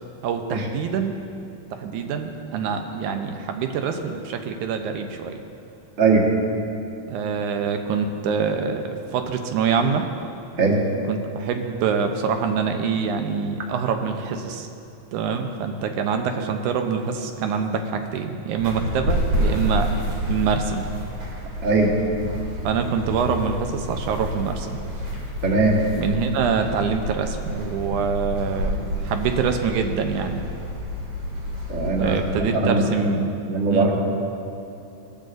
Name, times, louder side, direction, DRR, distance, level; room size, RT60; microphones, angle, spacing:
voice 1, 0.2-1.1 1.7-5.3 7.1-10.1 11.1-14.7 15.1-20.9 22.6-24.8 25.9-30.4 32.0-33.3 33.7-33.9, right 6 dB, 85° right, 5 dB, 2.2 m, -25 dB
sound 1, 18.6-32.4, equal, 70° right, 4.1 m, -29 dB
voice 2, 21.6-21.9 25.4-25.8 31.7-32.1 32.5-33.1 33.5-34.0, right 3 dB, 35° right, -2 dB, 1.4 m, -20 dB
18.5 x 13.5 x 2.6 m, 2.9 s
omnidirectional pair, 3.5 m